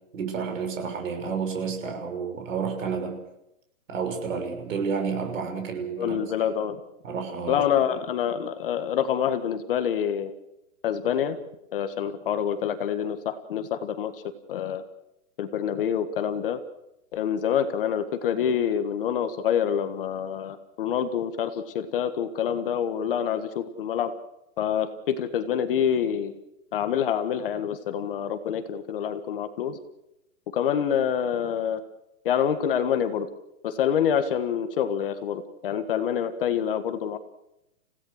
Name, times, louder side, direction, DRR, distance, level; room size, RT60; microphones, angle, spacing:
voice 1, 0.1-3.2 3.9-6.2 7.0-7.6, right 5 dB, 60° right, 5 dB, 6.4 m, -30 dB
voice 2, 6.0-6.8 7.5-10.3 10.8-11.4 11.7-14.1 14.5-14.8 15.4-16.6 17.1-24.1 24.6-26.3 26.7-29.8 30.5-31.8 32.2-33.3 33.6-37.2, left 8 dB, 40° left, 10 dB, 1.7 m, -26 dB
29.5 x 17.0 x 6.6 m, 0.86 s
hypercardioid pair, 165°, 44 cm